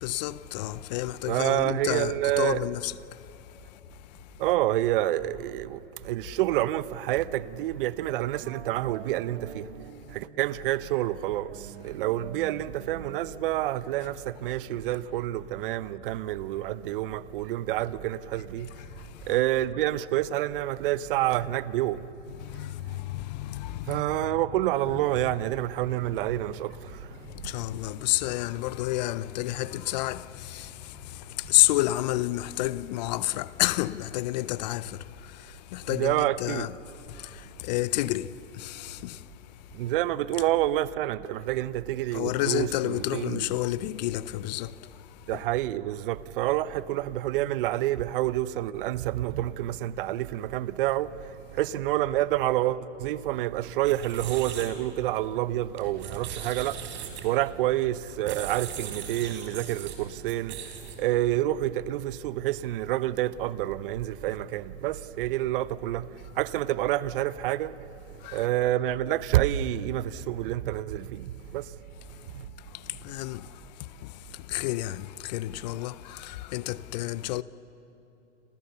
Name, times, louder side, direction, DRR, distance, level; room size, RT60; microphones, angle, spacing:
voice 1, 0.0-2.9 18.7-19.1 22.4-24.0 27.4-36.7 37.1-39.2 42.1-44.7 45.3-45.4 68.2-68.5 72.7-73.5 74.0-77.4, left 17 dB, 35° left, 0.6 m, -30 dB
voice 2, 1.3-2.7 4.4-9.7 10.1-18.7 19.3-22.1 23.9-27.1 35.9-36.7 39.7-43.5 45.3-51.1 51.5-56.8 57.2-60.6 61.0-66.1 66.3-67.8 68.3-71.7 72.3-72.5, right 14 dB, 45° right, 0.9 m, -28 dB
sound 1, 8.4-10.7 11.5-14.8, right 7 dB, 65° right, 2.8 m, -47 dB
sound 2, 24.8-34.6, left 1 dB, 10° left, 5.9 m, -52 dB
sound 3, 53.7-61.2, right 8 dB, 30° right, 4.3 m, -40 dB
29.0 x 27.5 x 6.9 m
hypercardioid pair, 120°, 37 cm